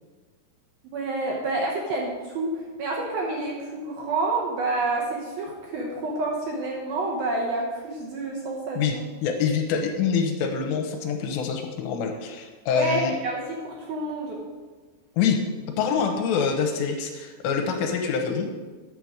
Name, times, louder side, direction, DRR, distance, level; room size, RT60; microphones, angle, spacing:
voice 1, 0.9-9.1 12.7-14.4, right 2 dB, 70° right, -2 dB, 2.4 m, -28 dB
voice 2, 9.2-13.1 15.2-15.4 15.8-18.5, left 6 dB, 80° left, 4 dB, 2.9 m, -25 dB
9.4 x 6.8 x 4.9 m, 1.4 s
omnidirectional pair, 5.3 m